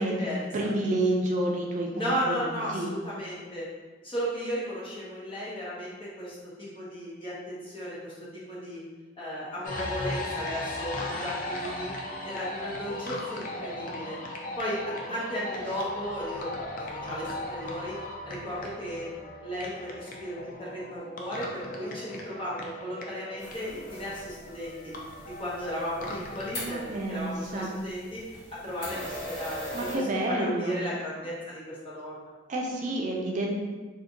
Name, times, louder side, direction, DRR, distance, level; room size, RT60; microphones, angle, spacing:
voice 1, 0.0-0.7 1.9-3.7 4.0-8.8 9.2-11.9 12.2-14.2 14.6-16.5 16.8-18.0 18.2-25.0 25.4-28.2 28.6-32.2, equal, 30° left, -8 dB, 1.1 m, -35 dB
voice 2, 0.5-2.5 2.7-2.9 26.6-27.7 29.7-30.8 32.5-33.6, right 1 dB, 45° right, -1 dB, 0.4 m, -29 dB
sound 1, 9.6-26.8, left 1 dB, 50° left, 0.5 m, -38 dB
sound 2, 23.4-30.0, equal, 65° left, 1.3 m, -41 dB
2.7 x 2.5 x 3.7 m, 1.3 s
head